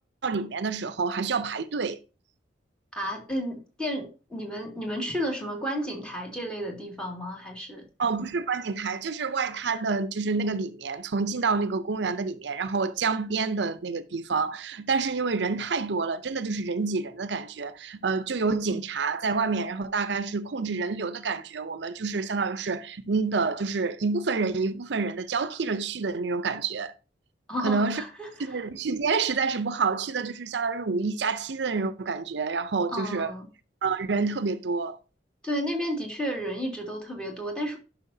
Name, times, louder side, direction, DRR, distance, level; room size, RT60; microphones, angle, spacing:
voice 1, 0.2-2.0 8.0-26.9 27.6-28.0 28.4-33.3 33.8-35.0, right 4 dB, 75° right, 0.6 m, -28 dB
voice 2, 2.9-7.8 27.5-28.6 32.9-33.5 35.4-37.8, equal, 5° left, 2.2 m, -32 dB
11.0 x 5.7 x 2.7 m
head